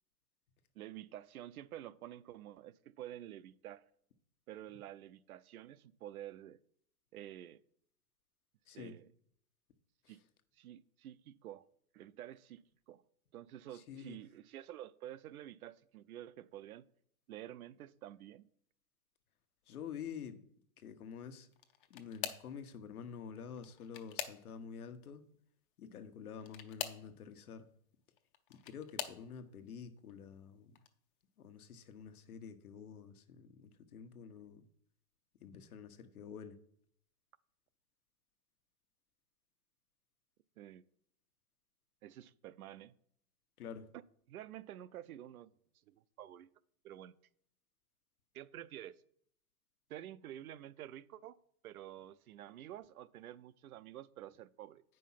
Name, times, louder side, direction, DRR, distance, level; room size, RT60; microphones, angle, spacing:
voice 1, 0.7-3.8 4.5-6.6 7.1-7.6 8.7-9.0 10.1-10.2 10.5-11.7 11.9-13.0 13.3-16.8 17.3-18.5 40.6-40.8 42.0-42.9 43.9-44.0 44.3-45.5 45.9-46.5 46.8-47.1 48.3-49.0 49.9-51.4 51.6-54.8, right 12 dB, 75° right, 0.6 m, -50 dB
voice 2, 8.7-9.0 10.0-10.2 13.7-14.2 19.7-20.4 20.8-21.5 21.9-25.2 25.8-27.7 28.5-30.8 31.4-34.6 35.4-36.6 43.6-43.9, left 7 dB, 80° left, 1.3 m, -48 dB
sound 1, 21.5-22.6 23.5-24.8 26.4-27.1 28.2-29.2 30.0-30.3 30.8-30.9 32.2-32.3, left 10 dB, 35° left, 0.7 m, -44 dB
8.5 x 5.4 x 5.7 m
hypercardioid pair, 155°, 44 cm